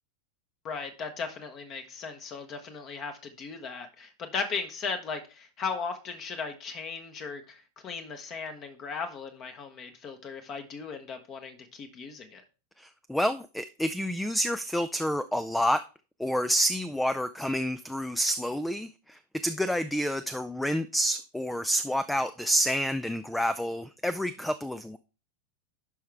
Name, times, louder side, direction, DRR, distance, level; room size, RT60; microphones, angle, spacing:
voice 1, 0.6-12.4, left 5 dB, 30° left, 1.1 m, -37 dB
voice 2, 12.8-15.8 16.2-25.0, equal, 5° left, 0.4 m, -29 dB
10.5 x 5.7 x 3.4 m
figure-of-eight pair, 90°, 0 cm